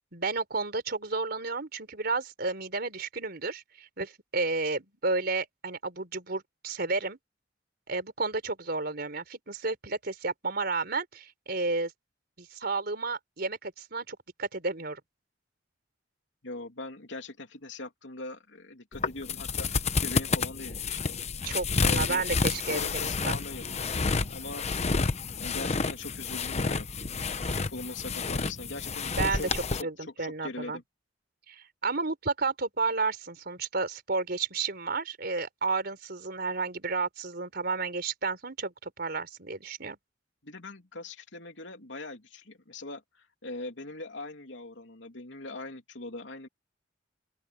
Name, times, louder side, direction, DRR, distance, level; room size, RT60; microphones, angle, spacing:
voice 1, 0.1-7.2 7.9-11.9 12.4-15.0 21.4-21.7 21.9-23.4 29.1-30.8 31.5-40.0, right 3 dB, 60° right, 4.1 m, -32 dB
voice 2, 16.4-19.7 20.0-21.2 21.8-22.2 22.7-24.7 25.4-30.8 40.4-46.5, left 2 dB, 85° left, 3.0 m, -41 dB
sound 1, 18.9-29.8, left 4 dB, 35° left, 0.9 m, -30 dB
open air
head